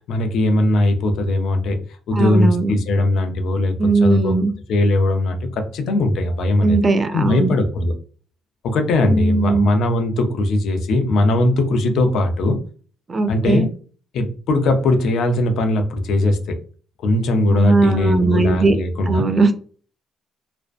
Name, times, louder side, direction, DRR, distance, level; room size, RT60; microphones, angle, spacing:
voice 1, 0.0-1.8 2.1-4.3 4.7-6.8 7.1-7.9 8.6-12.6 13.3-13.7 14.1-16.6 17.0-19.2, left 2 dB, 70° left, 5 dB, 0.5 m, -19 dB
voice 2, 2.1-2.7 3.8-4.5 6.6-7.5 9.1-9.7 13.1-13.6 17.5-18.8 19.1-19.5, right 3 dB, 35° right, 8 dB, 0.5 m, -18 dB
2.5 x 2.0 x 2.4 m, 0.41 s
supercardioid pair, 65°, 0 cm